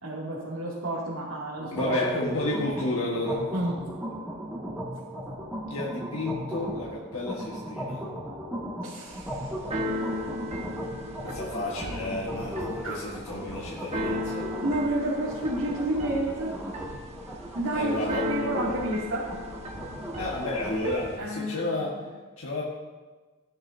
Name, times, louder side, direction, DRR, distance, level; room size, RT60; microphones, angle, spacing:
voice 1, 0.0-2.0 3.5-3.7 8.8-9.5 12.8-13.1 14.6-16.5 17.6-19.3 21.2-21.8, right 1 dB, 90° right, -8 dB, 2.4 m, -30 dB
sound 1, 1.6-20.8, equal, 10° right, 1.9 m, -37 dB
voice 2, 1.7-3.5 5.7-8.1 11.2-14.5 17.7-18.3 20.2-22.0 22.4-22.6, left 1 dB, 85° left, -4 dB, 1.6 m, -31 dB
Keyboard (musical), 9.1-21.2, left 1 dB, 30° right, 1.4 m, -36 dB
16.0 x 11.0 x 2.7 m, 1.3 s
head